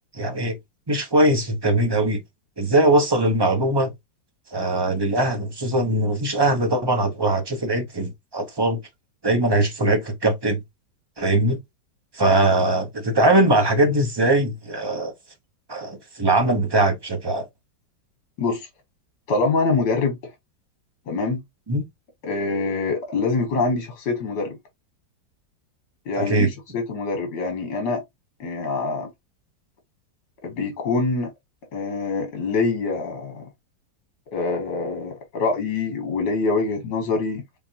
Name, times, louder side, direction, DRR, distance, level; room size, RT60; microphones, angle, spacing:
voice 1, 0.1-0.6 0.9-2.2 2.6-3.9 4.5-8.8 9.2-10.6 11.2-11.6 12.1-15.1 15.7-17.5 21.7-21.9 26.2-26.5, right 2 dB, 20° right, 0.6 m, -21 dB
voice 2, 18.4-18.7 19.3-20.3 21.1-21.4 22.2-24.6 26.1-28.0 28.4-29.1 30.4-31.3 31.7-33.5 34.3-37.4, left 3 dB, 70° left, 1.7 m, -25 dB
4.5 x 3.7 x 2.8 m
omnidirectional pair, 1.9 m